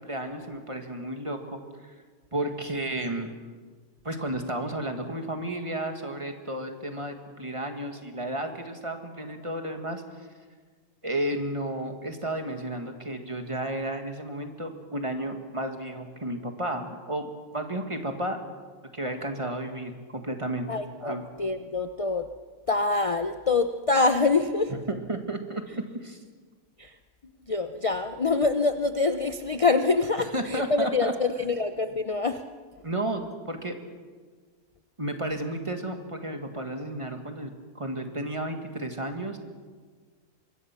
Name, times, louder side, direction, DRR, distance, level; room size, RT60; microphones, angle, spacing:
voice 1, 0.0-1.9 2.3-3.3 4.0-10.0 11.0-18.4 18.9-20.7 21.0-21.2 24.9-26.2 30.3-31.1 32.8-33.8 35.0-39.4, right 1 dB, 20° right, 5 dB, 1.8 m, -32 dB
voice 2, 20.7-22.3 22.7-24.7 26.8-26.9 27.5-32.4, left 3 dB, 45° left, 8 dB, 0.4 m, -25 dB
25.0 x 22.0 x 6.0 m, 1.5 s
omnidirectional pair, 1.7 m